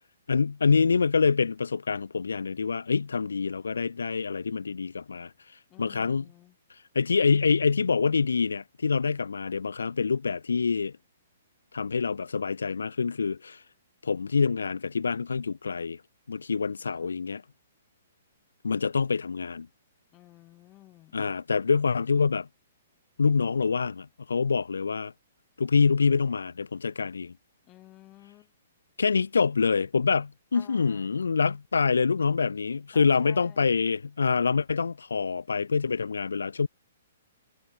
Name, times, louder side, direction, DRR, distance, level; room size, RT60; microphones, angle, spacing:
voice 1, 0.3-5.3 5.8-6.3 6.9-10.9 11.7-13.6 14.0-16.0 16.3-17.4 18.6-19.7 21.1-22.5 23.2-25.1 25.6-27.3 29.0-36.7, left 5 dB, 90° left, 0.6 m, -26 dB
voice 2, 5.7-6.6 17.0-17.2 20.1-21.2 27.6-28.5 30.5-31.1 32.9-33.9, left 17 dB, 25° left, 3.4 m, -53 dB
hypercardioid pair, 135°, 0 cm